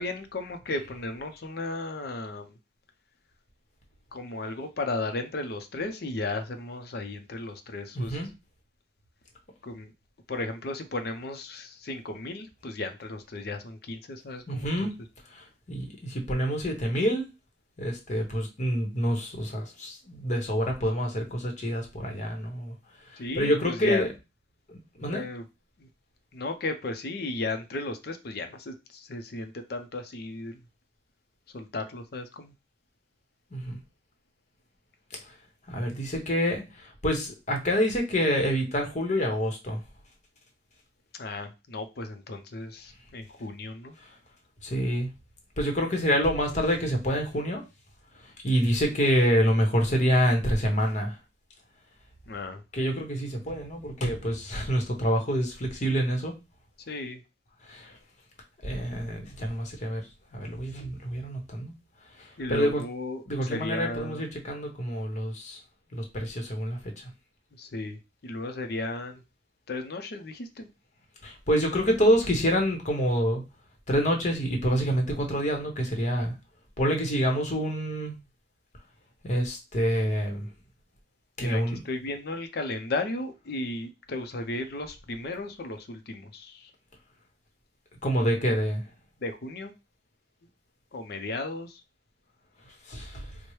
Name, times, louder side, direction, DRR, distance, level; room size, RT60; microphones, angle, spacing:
voice 1, 0.0-2.6 4.1-8.2 9.6-9.9 10.3-14.9 23.2-24.1 25.1-25.4 25.8-25.9 26.3-30.6 31.5-32.5 41.1-44.0 52.3-52.6 56.9-57.2 62.4-64.2 67.6-69.2 69.7-70.7 81.4-86.7 89.2-89.7 90.9-91.8, left 2 dB, 65° left, 0.6 m, -35 dB
voice 2, 7.9-8.3 14.5-14.9 15.4-17.3 17.8-22.7 23.4-24.1 24.7-25.2 33.5-33.8 35.7-39.8 44.6-45.1 45.6-47.6 48.4-51.1 52.7-56.3 57.7-57.9 58.6-60.0 60.3-61.7 62.5-62.8 63.3-65.6 65.9-66.8 71.2-73.4 73.9-76.3 76.8-78.2 79.2-80.5 81.4-81.8 88.0-88.8 92.9-93.2, equal, 45° left, 1.0 m, -27 dB
4.4 x 2.1 x 3.1 m
head